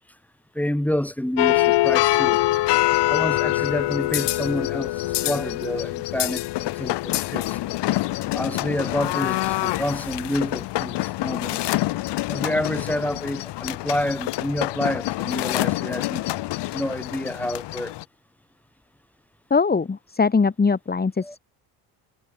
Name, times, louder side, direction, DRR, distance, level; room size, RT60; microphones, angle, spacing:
voice 1, 0.5-2.4 3.1-7.6 8.3-11.7 12.3-16.2 16.7-17.9 21.2-21.3, left 1 dB, 5° left, 4.5 m, -28 dB
sound 1, 1.4-18.0, left 17 dB, 65° left, 2.4 m, -25 dB
voice 2, 19.5-21.4, left 4 dB, 20° left, 2.2 m, -21 dB
supercardioid pair, 75°, 45 cm